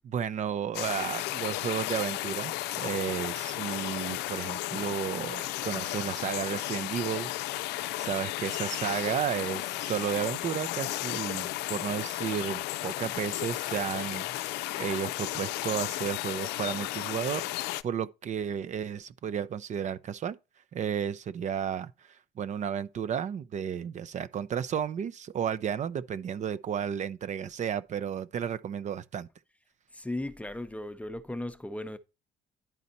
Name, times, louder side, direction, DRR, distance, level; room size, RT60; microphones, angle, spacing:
voice 1, 0.0-7.7 8.0-17.5 17.8-20.4 20.7-29.3, right 8 dB, 45° right, 0.6 m, -33 dB
sound 1, 0.7-17.8, left 17 dB, 90° left, 0.5 m, -34 dB
voice 2, 29.9-32.0, left 1 dB, 10° left, 0.7 m, -36 dB
10.5 x 4.1 x 4.1 m
cardioid pair, 110°, 17 cm